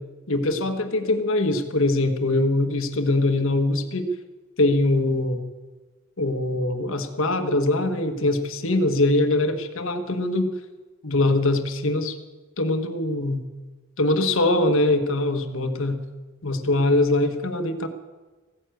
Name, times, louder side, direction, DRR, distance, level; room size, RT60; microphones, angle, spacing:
voice 1, 0.3-4.1 4.6-5.4 6.2-10.5 11.0-12.2 12.6-13.4 14.0-16.0 16.4-17.9, left 2 dB, 70° left, 8 dB, 1.3 m, -22 dB
15.5 x 9.5 x 7.8 m, 1.3 s
head